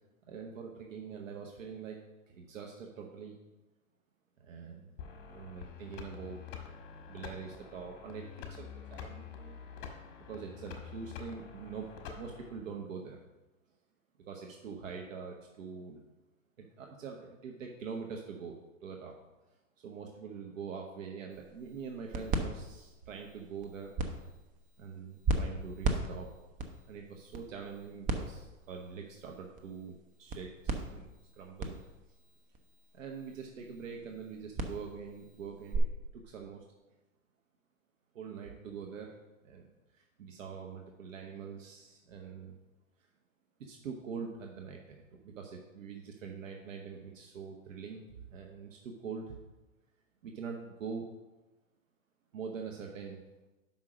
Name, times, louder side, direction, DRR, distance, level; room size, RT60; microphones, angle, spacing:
voice 1, 0.3-3.4 4.4-4.9 5.3-6.4 7.1-9.6 10.2-13.2 14.2-16.0 16.6-19.2 19.8-23.9 24.8-26.3 26.9-31.1 31.3-31.8 32.9-35.9 36.1-36.6 38.1-39.2 39.4-42.5 43.6-48.0 48.3-49.4 50.2-51.1 52.3-53.2, right 6 dB, 70° right, 1 dB, 1.1 m, -44 dB
sound 1, 5.0-12.6, left 7 dB, 40° left, 1.4 m, -47 dB
sound 2, 21.3-35.8, right 3 dB, 20° right, 0.6 m, -38 dB
5.6 x 5.0 x 6.3 m, 1.1 s
hypercardioid pair, 125°, 40 cm